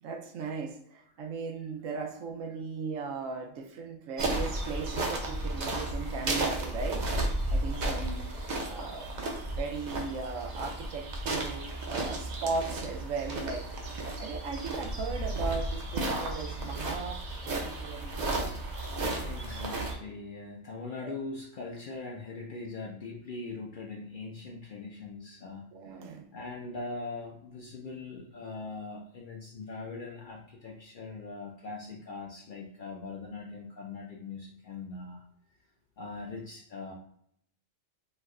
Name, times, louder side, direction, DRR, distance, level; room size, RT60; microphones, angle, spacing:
voice 1, 0.0-7.1 7.5-8.3 8.7-13.7 14.2-18.5 21.0-21.1 25.7-26.3, right 4 dB, 85° right, 4 dB, 1.0 m, -37 dB
sound 1, 4.2-20.0, right 2 dB, 50° right, 0.6 m, -33 dB
voice 2, 19.1-25.7 26.3-35.2 36.0-36.9, left 3 dB, 60° left, -1 dB, 0.5 m, -41 dB
3.1 x 2.1 x 3.5 m, 0.69 s
omnidirectional pair, 1.3 m